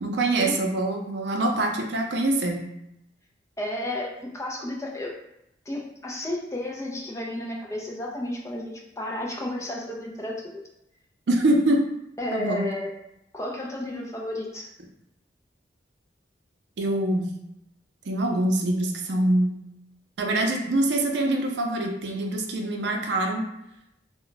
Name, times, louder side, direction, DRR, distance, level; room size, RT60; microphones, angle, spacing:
voice 1, 0.0-2.6 11.3-11.9 12.3-12.6 16.8-17.3 18.1-19.5 20.2-23.5, right 1 dB, 75° right, 2 dB, 0.5 m, -24 dB
voice 2, 3.6-5.1 5.7-10.6 12.2-12.9 13.3-14.7, left 1 dB, 15° left, 0 dB, 0.3 m, -32 dB
2.2 x 2.1 x 3.8 m, 0.83 s
head